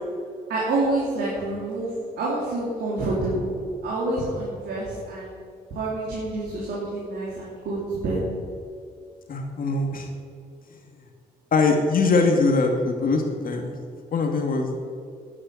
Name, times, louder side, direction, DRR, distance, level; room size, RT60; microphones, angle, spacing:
voice 1, 0.5-1.9 2.2-3.5 3.8-5.4 5.7-8.2, right 2 dB, 85° right, -6 dB, 3.3 m, -27 dB
voice 2, 9.3-10.1 11.5-13.7 14.1-14.7, left 3 dB, 60° left, 3 dB, 2.4 m, -22 dB
9.9 x 9.6 x 9.2 m, 2.3 s
cardioid pair, 85°, 17 cm